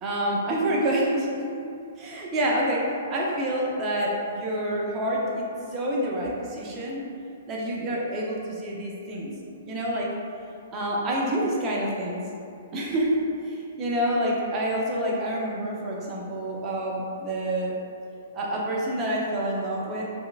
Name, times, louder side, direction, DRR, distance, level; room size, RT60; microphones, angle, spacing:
voice 1, 0.0-1.4 2.0-2.8 3.1-5.5 5.7-7.0 7.5-9.3 9.7-10.1 10.7-12.2 12.7-13.2 13.4-17.7 18.3-20.0, right 1 dB, 25° right, -4 dB, 0.7 m, -27 dB
4.3 x 2.2 x 2.4 m, 2.5 s
hypercardioid pair, 130°, 0 cm